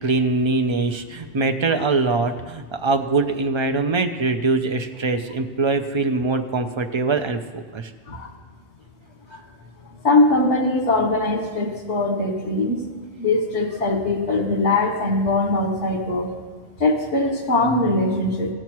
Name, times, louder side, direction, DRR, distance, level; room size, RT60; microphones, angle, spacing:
voice 1, 0.0-7.9, right 3 dB, 50° right, 6 dB, 0.3 m, -23 dB
voice 2, 10.0-12.8 13.2-16.3 16.8-18.5, left 2 dB, 65° left, 3 dB, 1.7 m, -21 dB
16.0 x 7.1 x 4.6 m, 1.5 s
omnidirectional pair, 1.3 m